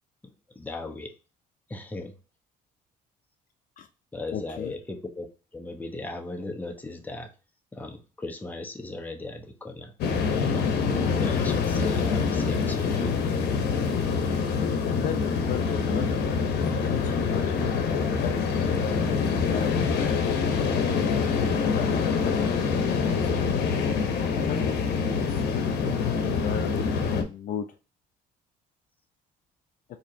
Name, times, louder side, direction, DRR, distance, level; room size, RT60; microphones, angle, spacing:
voice 1, 0.6-1.1 1.7-2.1 4.1-5.3 5.5-7.3 7.7-9.9 11.2-13.1 25.0-25.3, left 2 dB, 10° left, 4 dB, 0.7 m, -37 dB
voice 2, 4.3-4.7 14.2-17.4 18.2-20.4 21.5-22.3 22.8-23.6 24.4-25.1 25.5-25.6 26.2-27.7, left 9 dB, 55° left, 8 dB, 0.4 m, -36 dB
sound 1, 10.0-27.2, left 5 dB, 75° left, 0.7 m, -25 dB
4.3 x 2.8 x 2.5 m, 0.33 s
cardioid pair, 110°, 17 cm